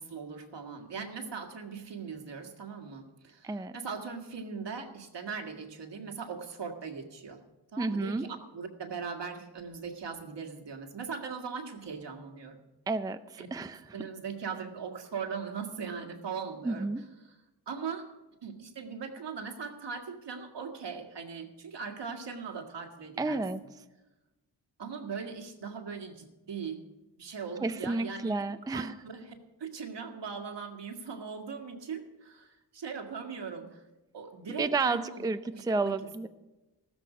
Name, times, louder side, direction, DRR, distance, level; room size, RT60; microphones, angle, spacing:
voice 1, 0.0-7.4 7.7-12.6 13.4-13.5 13.9-17.4 17.7-18.1 18.4-23.4 24.8-26.8 27.2-28.4 28.7-33.9 34.1-35.2 35.5-36.0, right 5 dB, 70° right, 5 dB, 1.9 m, -40 dB
voice 2, 3.4-3.8 7.8-8.3 12.9-13.8 16.6-17.1 23.2-23.6 27.6-28.9 34.6-36.3, right 3 dB, 10° right, 11 dB, 0.5 m, -31 dB
14.5 x 13.0 x 5.0 m, 1.1 s
wide cardioid pair, 90°, 44 cm